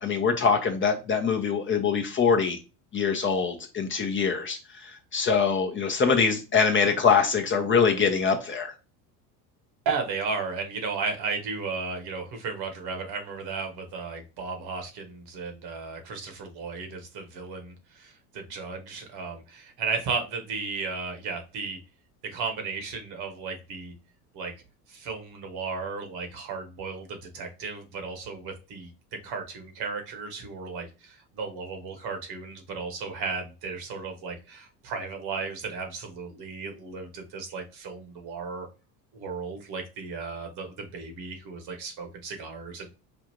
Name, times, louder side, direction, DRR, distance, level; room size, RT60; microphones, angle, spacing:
voice 1, 0.0-2.6 2.9-8.7, left 5 dB, 25° left, 3 dB, 0.7 m, -24 dB
voice 2, 9.8-21.8 22.2-23.9 24.3-24.5 24.9-38.7 39.1-42.9, right 4 dB, 55° right, 5 dB, 1.2 m, -34 dB
5.1 x 2.4 x 2.9 m, 0.31 s
hypercardioid pair, 80°, 47 cm